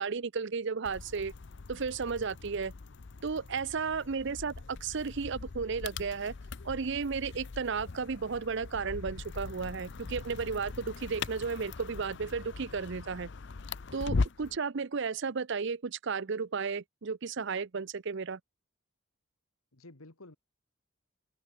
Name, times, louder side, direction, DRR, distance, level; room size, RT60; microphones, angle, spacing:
voice 1, 0.0-1.3 1.7-2.7 3.2-6.3 6.6-13.3 13.9-18.4, right 5 dB, 60° right, 0.6 m, -34 dB
sound 1, 0.8-14.6, left 4 dB, 55° left, 0.6 m, -40 dB
voice 2, 4.1-4.6 14.4-14.6 19.7-20.4, left 2 dB, 90° left, 2.2 m, -54 dB
head